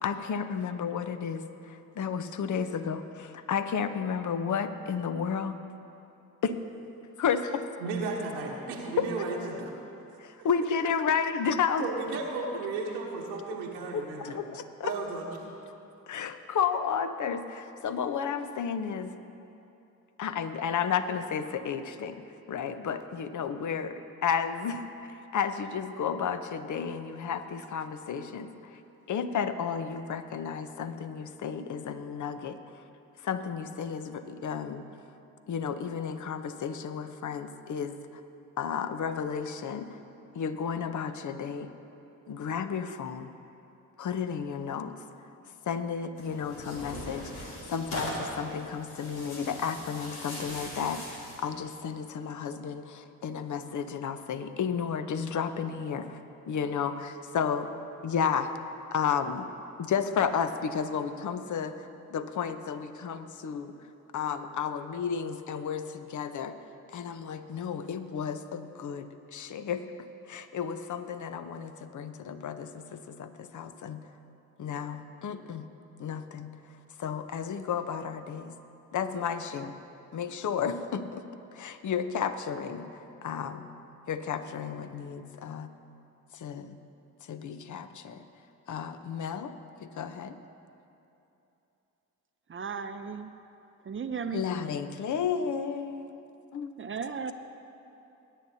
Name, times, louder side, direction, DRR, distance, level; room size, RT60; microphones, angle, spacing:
voice 1, 0.0-5.6 6.4-6.6 7.2-7.7 9.0-9.2 10.2-11.9 13.9-14.9 16.1-19.1 20.2-28.8 29.1-32.8 33.2-34.8 35.5-38.2 38.6-40.0 40.3-41.7 42.3-43.3 44.0-45.0 45.6-56.2 56.5-57.7 58.0-58.5 58.9-59.5 59.8-63.7 64.1-66.6 66.9-74.0 74.6-75.7 76.0-78.6 78.9-79.8 80.1-81.2 81.5-83.7 84.1-85.7 86.3-86.8 87.2-88.2 88.7-89.5 89.8-90.4 94.3-96.3 96.5-96.7, left 7 dB, 45° left, 10 dB, 0.9 m, -32 dB
voice 2, 7.8-9.7 11.8-14.3 14.8-15.3, right 4 dB, 85° right, -3 dB, 1.2 m, -34 dB
Tearing, 46.2-51.5, left 1 dB, 90° left, 1.9 m, -40 dB
voice 3, 92.5-93.3 93.8-94.4 96.8-97.3, right 6 dB, 30° right, 9 dB, 0.7 m, -35 dB
21.0 x 10.0 x 2.8 m, 2.9 s
hypercardioid pair, 45°, 40 cm